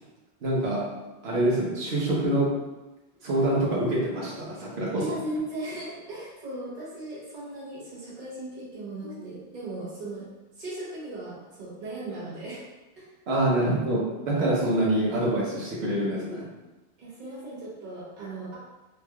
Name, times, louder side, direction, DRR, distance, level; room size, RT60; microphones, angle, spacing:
voice 1, 0.4-0.8 1.2-2.5 3.2-5.0 9.0-9.2 13.3-16.5, right 1 dB, 70° right, -5 dB, 1.1 m, -25 dB
voice 2, 5.0-10.3 10.6-12.6 13.0-13.1 17.0-18.6, right 1 dB, 45° right, -7 dB, 1.1 m, -37 dB
3.3 x 2.9 x 2.2 m, 1.1 s
omnidirectional pair, 1.1 m